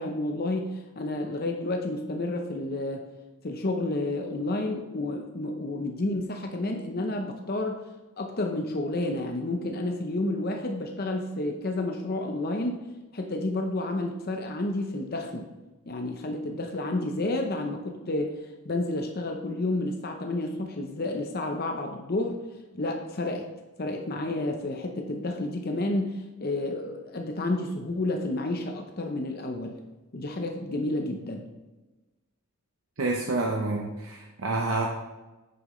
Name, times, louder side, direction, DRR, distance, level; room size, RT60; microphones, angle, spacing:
voice 1, 0.0-3.0 3.4-7.8 8.2-12.8 13.1-15.5 15.9-18.3 18.6-22.4 22.7-23.5 23.8-29.8 30.1-31.4, left 2 dB, 45° left, 3 dB, 0.7 m, -30 dB
voice 2, 33.0-34.9, right 2 dB, 65° right, 0 dB, 0.8 m, -28 dB
8.8 x 7.0 x 3.1 m, 1.1 s
head